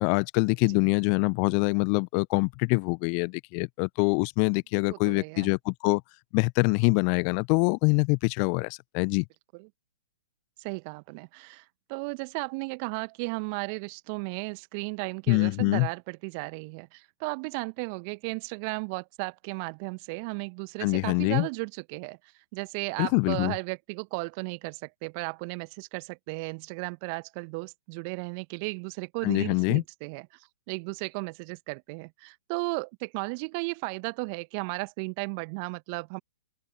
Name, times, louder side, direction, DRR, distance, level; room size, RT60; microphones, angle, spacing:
voice 1, 0.0-6.0 6.3-9.2 15.3-15.9 20.8-21.5 23.0-23.5 29.2-29.8, left 40 dB or more, 35° left, 0.7 m, -25 dB
voice 2, 4.9-5.5 9.5-9.7 10.6-22.2 22.5-36.2, right 33 dB, 40° right, 1.3 m, -35 dB
open air
figure-of-eight pair, 110°, 0 cm